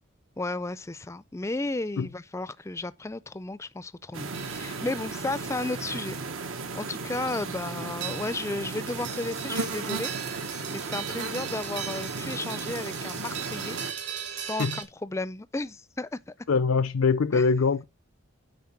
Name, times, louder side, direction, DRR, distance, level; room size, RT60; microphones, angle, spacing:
voice 1, 0.4-6.2 6.7-16.2 17.3-17.5, left 2 dB, 15° left, 0.4 m, -34 dB
sound 1, 4.1-13.9, right 4 dB, 75° right, 1.1 m, -35 dB
sound 2, 4.3-14.8, right 8 dB, 55° right, 2.5 m, -39 dB
voice 2, 16.5-17.8, left 5 dB, 80° left, 0.5 m, -23 dB
9.5 x 4.6 x 5.8 m
head